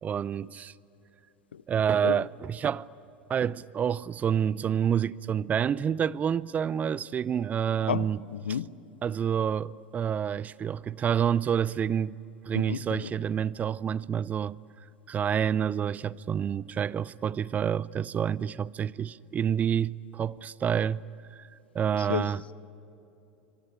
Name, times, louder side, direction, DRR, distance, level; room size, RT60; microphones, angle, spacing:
voice 1, 0.0-0.7 1.7-2.9 3.3-8.2 9.0-12.2 12.4-14.6 15.1-21.0 21.3-21.5 21.7-22.4, right 8 dB, 30° right, 0.5 m, -28 dB
voice 2, 7.9-8.7 12.5-13.1 21.9-22.3, left 8 dB, 90° left, 0.6 m, -32 dB
26.5 x 22.5 x 8.7 m
hypercardioid pair, 95°, 5 cm